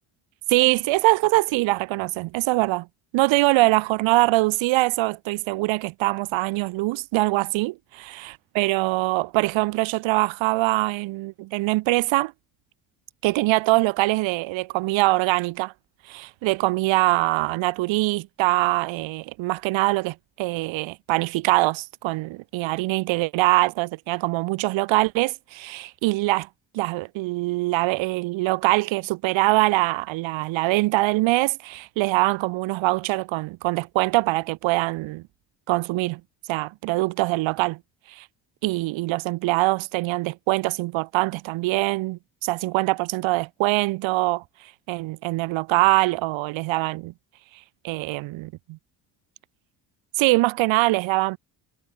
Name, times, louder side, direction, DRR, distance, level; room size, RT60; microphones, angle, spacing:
voice 1, 0.5-2.9 3.1-7.7 8.1-12.3 13.2-15.7 16.1-26.5 26.7-35.2 35.7-36.2 36.5-37.8 38.1-38.3 38.6-44.4 44.9-47.1 47.8-48.8 50.2-51.4, right 20 dB, 70° right, 1.0 m, -23 dB
supercardioid pair, 70°, 49 cm